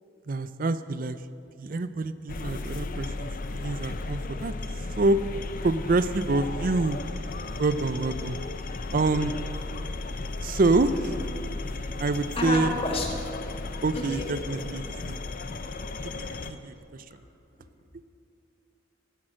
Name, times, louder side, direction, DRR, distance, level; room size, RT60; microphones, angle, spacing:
voice 1, 0.3-1.2 1.6-4.5 5.0-5.2 5.6-7.0 7.6-8.4 8.9-9.3 10.4-11.1 12.0-12.8 13.8-15.2 16.1-17.0, right 3 dB, 45° right, 14 dB, 0.5 m, -26 dB
sound 1, 2.3-16.5, left 2 dB, 45° left, 0.6 m, -35 dB
voice 2, 12.4-13.1 13.9-14.2, left 2 dB, 30° left, 0 dB, 1.5 m, -29 dB
14.0 x 11.0 x 6.2 m, 2.6 s
head